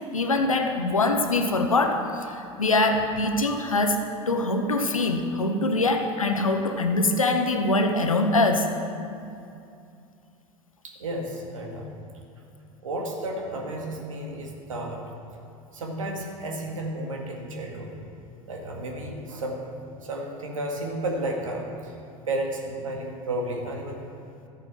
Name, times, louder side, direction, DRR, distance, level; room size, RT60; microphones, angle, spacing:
voice 1, 0.1-8.7, left 2 dB, 85° left, 5 dB, 1.1 m, -23 dB
voice 2, 10.8-11.9 12.8-15.0 15.7-18.0 18.5-19.6 20.0-21.9 22.3-24.0, right 1 dB, 75° right, 0 dB, 2.1 m, -32 dB
13.5 x 9.3 x 6.2 m, 2.5 s
figure-of-eight pair, 75°, 17 cm